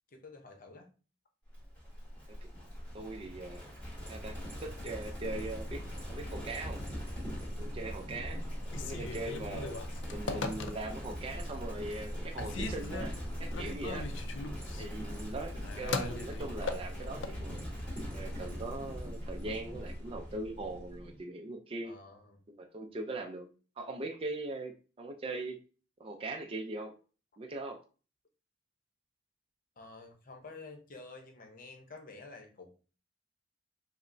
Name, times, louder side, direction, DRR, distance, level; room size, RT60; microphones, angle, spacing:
voice 1, 0.1-0.9 21.8-22.4 29.8-32.7, left 3 dB, 50° left, 4 dB, 0.7 m, -50 dB
Livestock farm animals working animals, 1.5-21.2, equal, 10° left, 1.9 m, -41 dB
voice 2, 2.9-3.6 4.1-6.8 7.6-8.4 8.8-9.8 10.1-13.1 13.4-14.1 14.8-17.6 18.1-21.9 22.6-23.5 23.8-25.6 26.0-26.9 27.4-27.8, right 2 dB, 30° right, 3 dB, 0.4 m, -40 dB
Telephone, 8.6-11.1 11.6-12.1 12.4-17.4, left 4 dB, 85° left, 0.4 m, -39 dB
5.1 x 2.0 x 2.6 m, 0.36 s
head